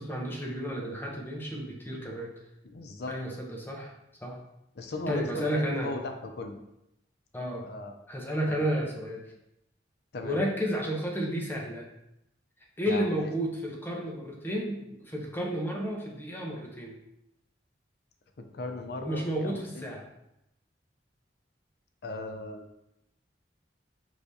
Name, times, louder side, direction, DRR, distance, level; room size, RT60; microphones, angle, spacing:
voice 1, 0.0-2.3 3.1-3.9 4.2-4.4 5.1-5.9 7.3-7.6 8.1-9.2 10.2-11.9 12.8-17.0 19.0-20.1, equal, 10° left, -1 dB, 0.7 m, -32 dB
voice 2, 2.6-3.1 4.8-6.6 7.6-7.9 8.5-8.7 10.1-10.4 12.9-13.3 18.5-19.9 22.0-22.7, left 2 dB, 65° left, 5 dB, 0.5 m, -37 dB
4.8 x 3.4 x 2.7 m, 0.85 s
head